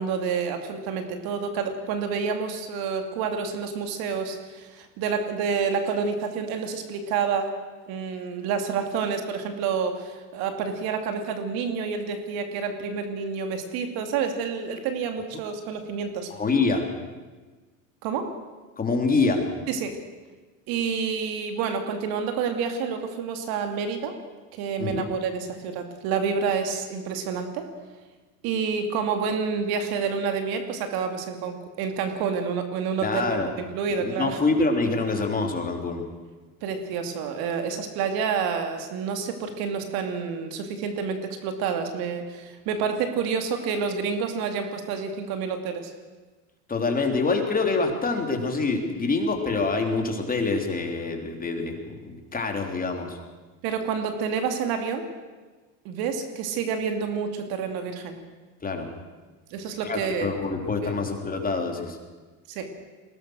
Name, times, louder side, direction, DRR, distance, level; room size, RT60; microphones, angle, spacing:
voice 1, 0.0-7.5 7.9-16.3 18.0-18.3 19.7-20.0 20.7-24.2 24.5-27.7 28.4-33.4 33.7-34.4 36.6-45.9 53.6-55.1 55.8-58.2 59.5-60.3 62.5-62.7, right 6 dB, 65° right, 6 dB, 2.9 m, -28 dB
voice 2, 16.3-16.9 18.8-19.4 24.8-25.1 33.0-33.5 34.0-36.0 46.7-51.8 52.0-53.2 58.6-58.9 59.8-62.0, left 3 dB, 20° left, 3 dB, 3.5 m, -26 dB
22.0 x 18.5 x 6.5 m, 1.3 s
supercardioid pair, 95°, 40 cm